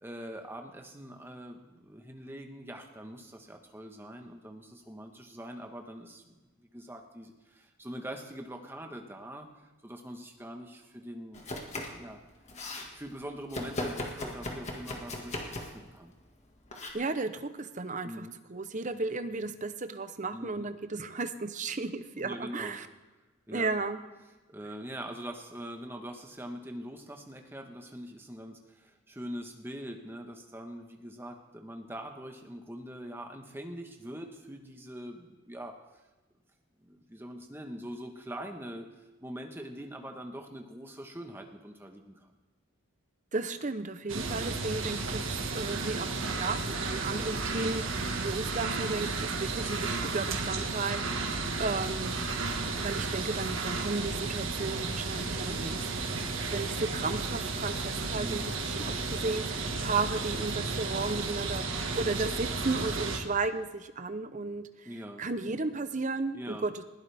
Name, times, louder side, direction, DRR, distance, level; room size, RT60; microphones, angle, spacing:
voice 1, 0.0-11.5 11.9-12.2 12.9-16.1 18.0-18.3 20.3-20.6 22.1-22.8 23.5-23.7 24.5-35.8 36.8-38.9 39.2-42.3 58.2-58.6 64.8-65.2 66.3-66.6, equal, 10° right, 3 dB, 1.3 m, -43 dB
Domestic sounds home sounds, 11.3-12.0 12.3-12.9 13.5-15.8 16.7-16.9, left 1 dB, 35° left, 1.8 m, -37 dB
voice 2, 16.9-22.9 23.5-24.0 43.3-51.2 51.6-52.3 52.8-64.9 65.2-66.8, right 3 dB, 35° right, 10 dB, 0.8 m, -34 dB
sound 1, 44.1-63.2, right 3 dB, 65° right, 1.6 m, -33 dB
20.0 x 16.0 x 3.5 m, 1.2 s
head